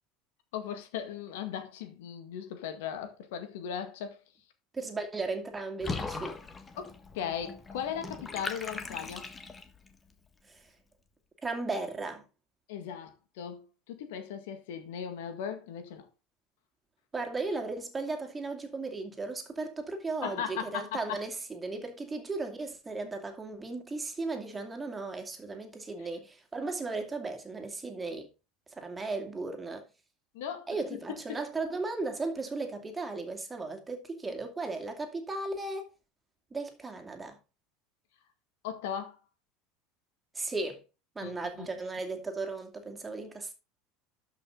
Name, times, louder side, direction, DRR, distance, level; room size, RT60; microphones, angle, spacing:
voice 1, 0.5-4.2 6.8-9.3 12.7-13.6 13.9-16.1 20.2-21.2 30.3-30.7 31.3-31.4 38.6-39.2 41.2-41.7, left 8 dB, 75° left, 1.8 m, -37 dB
voice 2, 4.7-6.4 10.5-10.6 11.4-12.2 17.1-28.3 28.7-29.8 30.7-35.9 36.5-37.4 40.3-40.8 41.2-43.5, right 3 dB, 20° right, 2.5 m, -36 dB
Water / Bathtub (filling or washing), 5.8-9.9, left 3 dB, 20° left, 1.6 m, -39 dB
12.5 x 5.6 x 3.9 m
hypercardioid pair, 90°, 0 cm